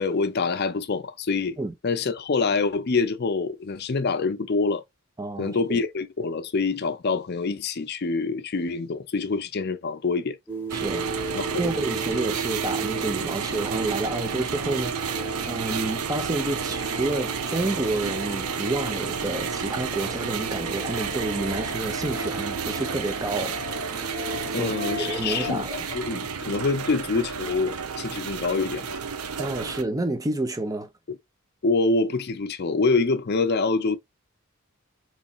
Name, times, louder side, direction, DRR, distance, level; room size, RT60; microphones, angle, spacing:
voice 1, 0.0-1.6 1.8-4.8 5.4-10.4 11.3-11.7 24.5-29.0 31.1-31.2 31.6-34.0, left 4 dB, 50° left, 0.5 m, -26 dB
voice 2, 5.2-5.8 10.7-11.0 11.6-23.6 24.5-24.7 25.0-25.8 29.4-30.9, right 2 dB, 15° right, 0.6 m, -29 dB
sound 1, 10.5-25.6, right 2 dB, 10° left, 1.1 m, -36 dB
sound 2, 10.7-29.8, right 6 dB, 90° right, 0.6 m, -31 dB
4.1 x 3.1 x 2.4 m
head